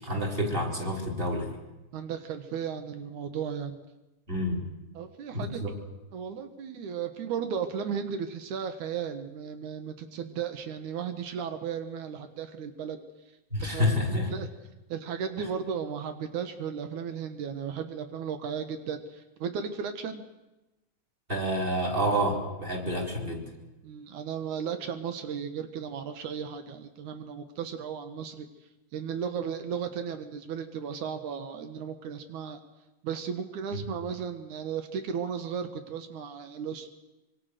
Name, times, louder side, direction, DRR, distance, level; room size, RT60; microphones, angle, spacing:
voice 1, 0.0-1.5 4.3-4.6 5.3-5.7 13.5-14.3 21.3-23.4 33.7-33.8, equal, 15° right, 2 dB, 4.5 m, -28 dB
voice 2, 1.9-3.8 5.0-5.6 6.1-13.0 13.6-14.5 14.9-20.2 23.8-28.5 28.9-32.6 33.0-36.9, right 7 dB, 80° right, 8 dB, 2.8 m, -35 dB
25.5 x 24.0 x 6.6 m, 1.0 s
omnidirectional pair, 3.4 m